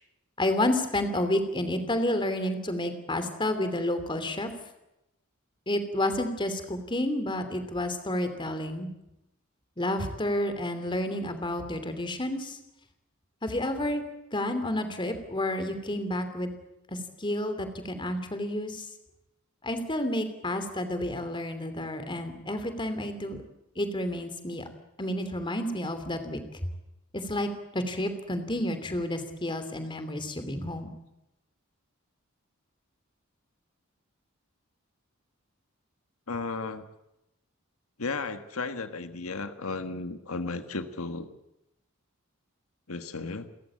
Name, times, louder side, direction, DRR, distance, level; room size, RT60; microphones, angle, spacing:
voice 1, 0.4-4.5 5.7-8.9 9.8-12.6 13.4-14.0 14.3-16.5 16.9-18.9 19.6-23.4 23.7-24.6 25.0-26.4 27.1-30.9, left 1 dB, 25° left, 9 dB, 2.9 m, -30 dB
voice 2, 36.3-36.8 38.0-41.3 42.9-43.5, left 3 dB, 90° left, 9 dB, 1.6 m, -34 dB
30.0 x 14.0 x 8.7 m, 0.88 s
head